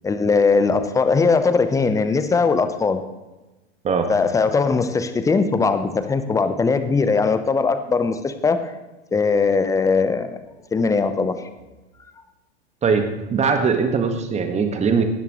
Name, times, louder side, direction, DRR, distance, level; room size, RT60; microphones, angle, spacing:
voice 1, 0.0-3.0 4.1-8.6 9.1-10.4 10.7-11.3, left 4 dB, 10° left, 10 dB, 0.8 m, -20 dB
voice 2, 12.8-15.0, right 5 dB, 20° right, 6 dB, 1.6 m, -21 dB
18.0 x 10.5 x 3.1 m, 1.1 s
figure-of-eight pair, 90°, 34 cm